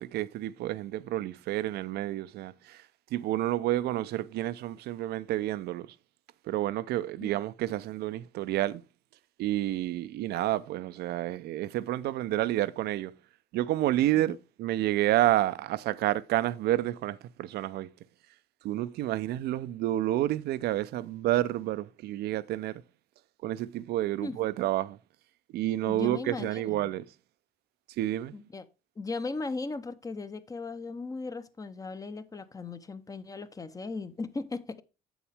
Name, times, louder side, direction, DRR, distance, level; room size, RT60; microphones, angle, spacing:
voice 1, 0.0-2.8 3.1-5.9 6.5-8.8 9.4-13.1 13.5-17.9 18.6-22.8 23.4-25.0 25.5-27.1 28.0-28.4, right 14 dB, 75° right, 0.5 m, -29 dB
voice 2, 25.9-26.9 28.3-28.7 29.0-34.8, left 3 dB, 20° left, 0.7 m, -37 dB
8.3 x 7.1 x 3.4 m
cardioid pair, 110°, 17 cm